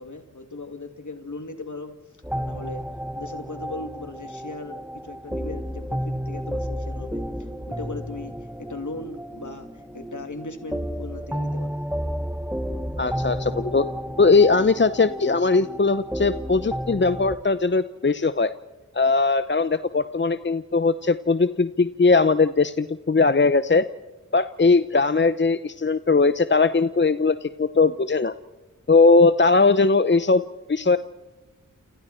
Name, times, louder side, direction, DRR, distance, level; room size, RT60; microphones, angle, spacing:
voice 1, 0.0-1.9 2.3-2.8 3.2-11.8, left 2 dB, 60° left, 6 dB, 2.9 m, -38 dB
sound 1, 2.2-17.4, equal, 5° right, 1.4 m, -32 dB
voice 2, 13.0-13.9 14.2-18.5 18.9-23.8 24.3-28.3 28.9-30.4 30.7-31.0, left 4 dB, 35° left, 13 dB, 0.7 m, -19 dB
29.0 x 29.0 x 4.5 m, 1.2 s
cardioid pair, 40°, 34 cm